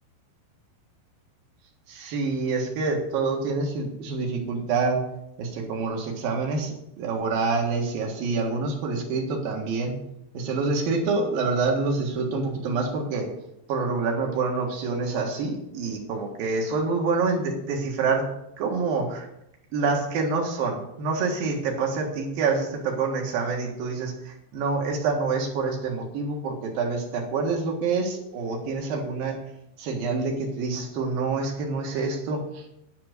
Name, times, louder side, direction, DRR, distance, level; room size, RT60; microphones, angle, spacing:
voice 1, 1.9-5.0 5.4-10.0 10.3-13.3 13.7-18.3 18.6-19.3 19.7-29.4 29.8-32.7, right 4 dB, 60° right, 1 dB, 2.8 m, -27 dB
11.0 x 5.8 x 6.5 m, 0.81 s
omnidirectional pair, 5.6 m